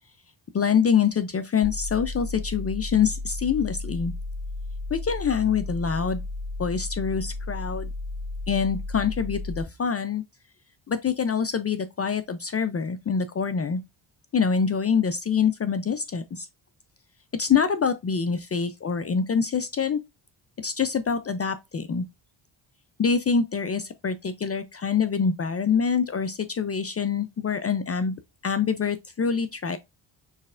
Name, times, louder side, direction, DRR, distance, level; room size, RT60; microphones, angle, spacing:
voice 1, 0.5-4.1 4.9-6.2 6.6-7.9 8.5-10.2 10.9-13.8 14.3-16.5 17.3-20.0 20.6-22.1 23.0-28.1 28.4-29.8, left 6 dB, 30° left, 0.6 m, -25 dB
sound 1, 1.6-9.6, left 2 dB, 15° right, 0.8 m, -33 dB
6.4 x 3.2 x 2.5 m
cardioid pair, 70°, 48 cm